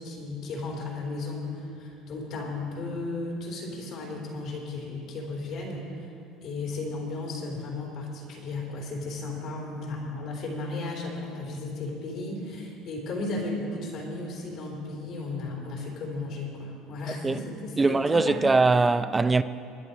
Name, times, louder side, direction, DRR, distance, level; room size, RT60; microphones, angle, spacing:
voice 1, 0.0-6.1 6.4-18.5, left 2 dB, 55° left, 3.7 m, -35 dB
voice 2, 17.8-19.4, right 3 dB, 20° right, 0.5 m, -21 dB
21.5 x 9.9 x 4.5 m
supercardioid pair, 105°, 0 cm